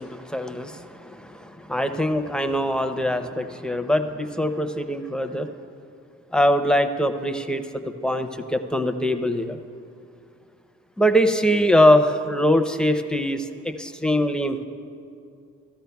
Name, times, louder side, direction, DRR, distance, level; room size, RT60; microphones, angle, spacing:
voice 1, 0.0-5.5 6.3-9.6 11.0-14.6, equal, 5° left, 7 dB, 0.6 m, -22 dB
16.0 x 12.5 x 2.3 m, 2.5 s
cardioid pair, 60°, 31 cm